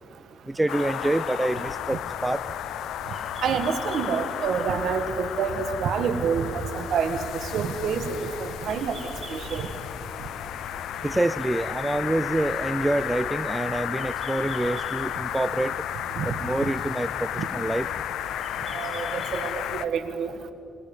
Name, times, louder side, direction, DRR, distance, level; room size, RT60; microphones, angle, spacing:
voice 1, 0.4-2.4 11.0-15.8 16.2-17.9, right 1 dB, 10° right, 16 dB, 0.4 m, -27 dB
sound 1, 0.5-19.9, right 2 dB, 30° right, 5.6 m, -49 dB
sound 2, 0.7-19.9, left 11 dB, 80° left, 0.6 m, -33 dB
voice 2, 3.4-6.5 6.7-7.2 7.5-8.1 8.4-9.0 9.3-9.7 16.2-16.3 17.4-17.5 18.7-20.3, right 6 dB, 70° right, 9 dB, 1.6 m, -27 dB
23.5 x 20.0 x 5.5 m, 2.6 s
cardioid pair, 90°, 0 cm